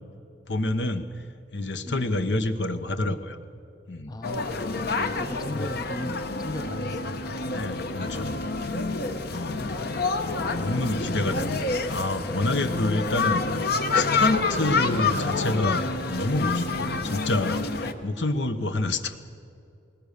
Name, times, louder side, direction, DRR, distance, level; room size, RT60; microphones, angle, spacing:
voice 1, 0.5-1.1 1.5-3.4 3.9-4.1 5.5-5.7 7.5-8.4 9.3-9.7 10.6-13.4 13.9-19.2, left 2 dB, 80° left, 9 dB, 1.2 m, -28 dB
voice 2, 1.9-2.2 4.1-7.4 9.6-9.9, left 2 dB, 20° left, 11 dB, 0.5 m, -37 dB
sound 1, 4.2-17.9, left 3 dB, 60° left, 1.1 m, -28 dB
20.0 x 19.5 x 6.8 m, 2.5 s
head